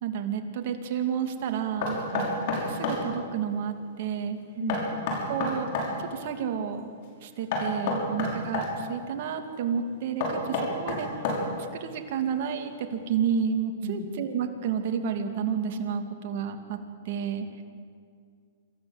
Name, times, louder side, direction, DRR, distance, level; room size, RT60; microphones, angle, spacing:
voice 1, 0.0-1.9 2.8-4.4 5.3-5.7 6.1-6.8 7.2-11.1 11.7-16.8 17.1-17.5, right 7 dB, 55° right, 5 dB, 2.5 m, -30 dB
Knock, 1.8-3.0 4.7-5.9 7.5-8.7 10.2-11.6, left 3 dB, 55° left, 5.8 m, -29 dB
voice 2, 4.5-4.9 13.8-14.1, right 3 dB, 75° right, -3 dB, 6.0 m, -33 dB
26.5 x 14.0 x 8.0 m, 2.2 s
hypercardioid pair, 140°, 0 cm